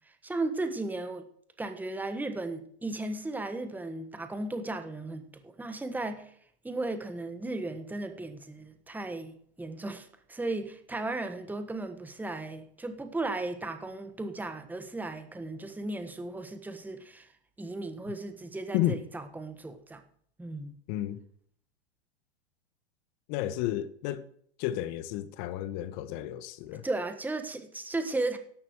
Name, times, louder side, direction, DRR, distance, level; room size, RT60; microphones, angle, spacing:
voice 1, 0.0-1.3 1.6-6.3 6.6-9.3 9.6-17.3 17.6-20.0 20.4-20.7 26.8-28.4, right 2 dB, 5° right, 1.4 m, -35 dB
voice 2, 20.9-21.2 23.3-24.3 24.6-26.8, left 13 dB, 45° left, 1.2 m, -32 dB
13.5 x 11.5 x 4.8 m
hypercardioid pair, 115°, 33 cm